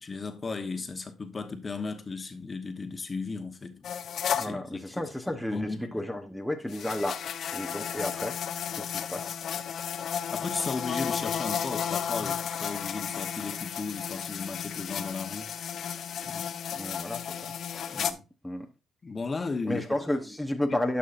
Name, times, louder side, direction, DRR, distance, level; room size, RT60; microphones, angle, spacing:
voice 1, 0.0-3.9 4.4-6.0 10.3-15.5 16.2-16.5 17.9-18.2 19.0-19.8 20.7-20.8, left 4 dB, 30° left, 1.0 m, -35 dB
sound 1, 3.8-4.5 6.7-18.1, left 8 dB, 65° left, 0.6 m, -33 dB
voice 2, 4.3-7.2 7.5-8.4 8.8-9.3 16.0-16.1 16.8-17.5 17.8-18.0 18.4-18.7 19.6-21.0, left 1 dB, ahead, 0.9 m, -32 dB
10.5 x 5.6 x 2.5 m
cardioid pair, 90°, 0 cm